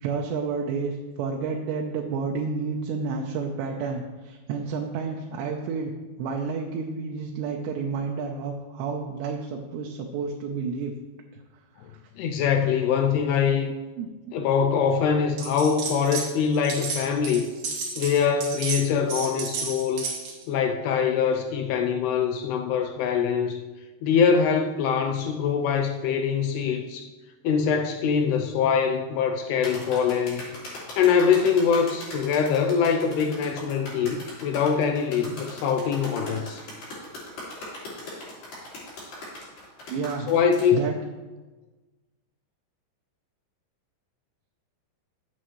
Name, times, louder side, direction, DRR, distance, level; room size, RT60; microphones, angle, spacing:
voice 1, 0.0-5.9 6.2-10.9 11.9-12.0 14.0-14.1 39.9-40.3 40.7-41.0, right 5 dB, 80° right, 1 dB, 2.8 m, -30 dB
voice 2, 12.2-13.8 14.3-17.5 18.0-20.1 20.5-23.6 24.0-27.1 27.4-30.4 31.0-36.6 40.3-40.8, left 6 dB, 80° left, 5 dB, 2.4 m, -23 dB
sound 1, 15.4-16.3 16.5-20.4, right 5 dB, 55° right, 2.5 m, -32 dB
sound 2, 29.6-40.7, left 2 dB, 50° left, 5.7 m, -39 dB
15.0 x 8.7 x 3.1 m, 1.3 s
omnidirectional pair, 5.1 m